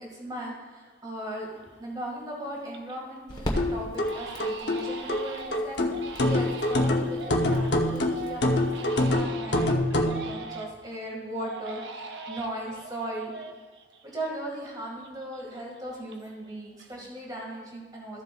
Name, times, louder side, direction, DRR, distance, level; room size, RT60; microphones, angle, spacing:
voice 1, 0.0-13.3 14.0-18.2, right 1 dB, 20° right, -2 dB, 2.1 m, -38 dB
Crying sobbing, 0.8-0.9 1.4-1.8 2.2-3.1 3.4-3.5 4.0-10.9 11.4-14.7 15.0-16.5 16.8-17.3, right 4 dB, 80° right, 0.7 m, -42 dB
sound 1, 1.2-9.1, equal, 25° left, 1.4 m, -40 dB
sound 2, 3.6-10.2, left 1 dB, 70° left, 0.9 m, -25 dB
14.5 x 8.1 x 2.5 m, 1.4 s
head